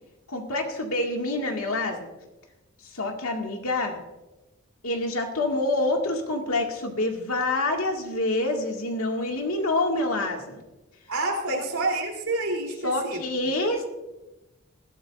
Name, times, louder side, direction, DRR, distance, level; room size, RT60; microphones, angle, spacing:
voice 1, 0.3-2.1 2.9-4.0 4.8-10.6 11.5-11.6 12.8-13.8, left 2 dB, 85° left, 2 dB, 2.2 m, -27 dB
voice 2, 11.1-13.2, right 2 dB, 85° right, 0 dB, 3.6 m, -28 dB
20.5 x 12.0 x 2.6 m, 1.0 s
head